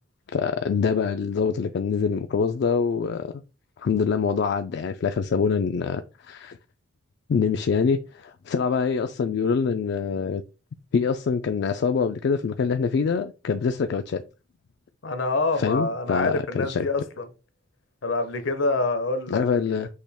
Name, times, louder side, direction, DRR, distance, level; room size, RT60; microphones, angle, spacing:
voice 1, 0.3-3.3 3.8-6.6 7.3-10.4 10.9-14.2 15.6-16.9 19.3-19.9, left 5 dB, 60° left, 0.3 m, -25 dB
voice 2, 15.0-17.3 18.0-19.4 19.7-19.9, left 3 dB, 75° left, 0.8 m, -26 dB
6.3 x 2.3 x 3.5 m
head